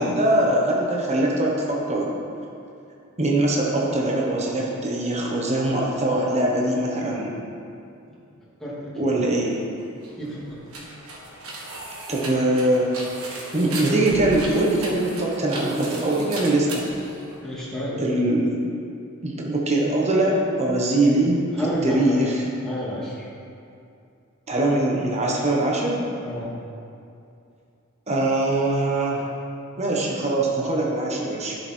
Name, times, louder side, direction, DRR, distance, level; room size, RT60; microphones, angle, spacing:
voice 1, 0.0-2.1 3.2-7.4 9.0-9.6 12.1-12.9 13.5-16.9 18.0-18.6 19.2-21.5 21.8-22.3 24.5-26.0 28.1-29.3 29.8-31.6, right 1 dB, 30° right, -2 dB, 1.2 m, -22 dB
voice 2, 8.6-9.3 10.2-10.7 17.4-18.2 21.6-22.2 22.6-23.3 26.2-26.5, equal, ahead, -9 dB, 2.5 m, -31 dB
sound 1, 9.9-17.8, right 2 dB, 90° right, 1.6 m, -37 dB
10.5 x 7.3 x 4.5 m, 2.5 s
head